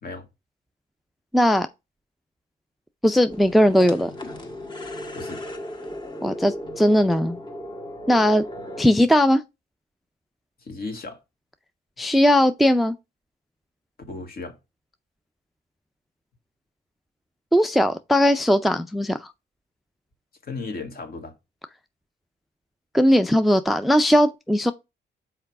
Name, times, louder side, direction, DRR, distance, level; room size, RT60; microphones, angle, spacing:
voice 1, 1.3-1.7 3.0-4.1 6.2-7.4 8.1-8.4 8.8-9.4 12.0-13.0 17.5-19.3 22.9-24.7, equal, ahead, 0.5 m, -19 dB
sound 1, 3.3-8.9, left 1 dB, 20° left, 1.6 m, -36 dB
voice 2, 10.6-11.2 14.1-14.6 20.4-21.3, left 3 dB, 50° left, 2.1 m, -35 dB
5.7 x 4.8 x 4.6 m
cardioid pair, 90°, 20 cm